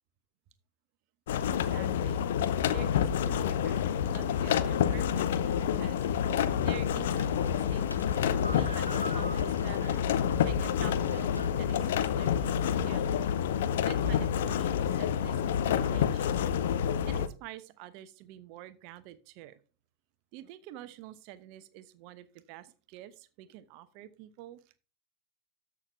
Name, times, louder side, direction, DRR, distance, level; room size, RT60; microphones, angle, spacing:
sound 1, 1.3-17.3, left 8 dB, 55° left, 0.7 m, -28 dB
voice 1, 1.5-2.3 2.7-6.0 6.6-8.1 8.5-13.3 13.8-16.4 17.1-19.6 20.3-24.6, right 13 dB, 45° right, 13 dB, 1.0 m, -48 dB
sound 2, 6.1-11.7, equal, 90° left, 0.9 m, -45 dB
13.0 x 6.3 x 3.4 m, 0.35 s
figure-of-eight pair, 90°, 0 cm